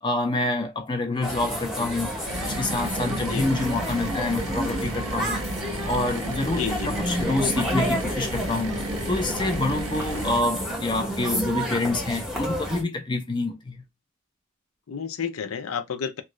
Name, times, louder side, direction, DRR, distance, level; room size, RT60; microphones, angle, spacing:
voice 1, 0.0-2.1 2.5-5.4 5.9-8.8 9.1-13.8, left 2 dB, 25° left, 0.5 m, -27 dB
sound 1, 1.2-12.8, equal, ahead, 0.8 m, -30 dB
sound 2, 2.3-10.4, right 2 dB, 80° right, 0.7 m, -33 dB
voice 2, 6.4-6.9 14.9-16.2, left 7 dB, 90° left, 0.5 m, -31 dB
3.0 x 2.5 x 3.0 m
head